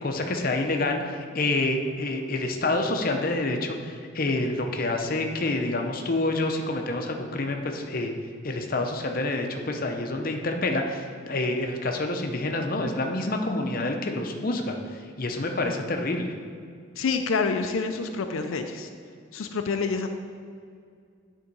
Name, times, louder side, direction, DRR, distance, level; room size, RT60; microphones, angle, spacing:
voice 1, 0.0-8.1 8.4-16.3, left 2 dB, 45° left, 4 dB, 0.7 m, -28 dB
voice 2, 17.0-18.9 19.3-20.1, left 4 dB, 85° left, 6 dB, 0.5 m, -27 dB
9.6 x 3.7 x 5.3 m, 2.2 s
head